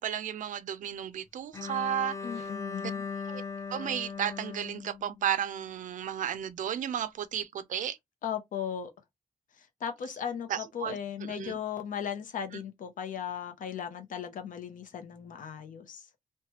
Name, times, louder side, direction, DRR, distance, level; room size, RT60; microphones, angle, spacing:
voice 1, 0.0-2.5 3.3-3.4 3.7-8.0 10.5-11.6, right 10 dB, 70° right, 0.4 m, -33 dB
Bowed string instrument, 1.5-5.6, left 5 dB, 20° left, 0.5 m, -39 dB
voice 2, 2.2-3.1 8.2-8.9 9.8-16.1, left 8 dB, 75° left, 0.7 m, -37 dB
3.1 x 2.2 x 2.8 m
wide cardioid pair, 180°, 14 cm